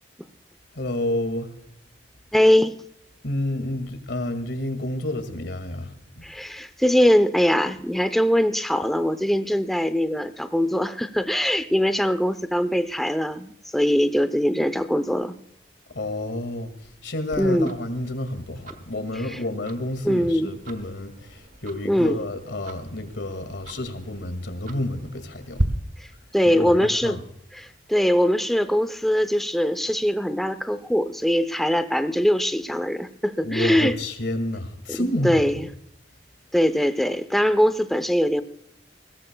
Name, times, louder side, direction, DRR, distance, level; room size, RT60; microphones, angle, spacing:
voice 1, 0.7-1.5 3.2-6.2 15.9-25.6 26.5-27.2 33.4-35.7, left 1 dB, 75° left, 9 dB, 2.1 m, -30 dB
voice 2, 2.3-2.7 6.2-15.3 17.4-17.7 20.0-20.5 21.8-22.2 26.3-27.2 27.5-33.9 34.9-35.7 36.5-38.4, equal, ahead, 11 dB, 0.6 m, -22 dB
Tick-tock, 17.3-25.6, right 1 dB, 45° right, 1.2 m, -37 dB
22.0 x 16.5 x 2.3 m, 0.76 s
head